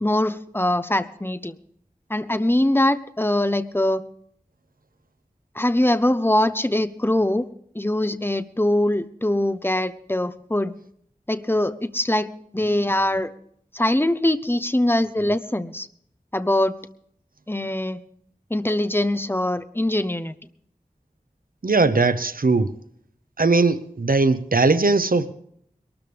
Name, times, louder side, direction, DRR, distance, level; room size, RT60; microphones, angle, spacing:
voice 1, 0.0-1.5 2.1-4.0 5.5-7.5 7.7-10.7 11.3-13.3 13.7-15.9 16.3-16.7 17.5-18.0 18.5-20.3, left 1 dB, 15° left, 1.0 m, -22 dB
voice 2, 21.6-22.7 23.4-25.3, right 3 dB, 80° right, 1.0 m, -19 dB
22.5 x 13.0 x 3.5 m
wide cardioid pair, 45°, 14 cm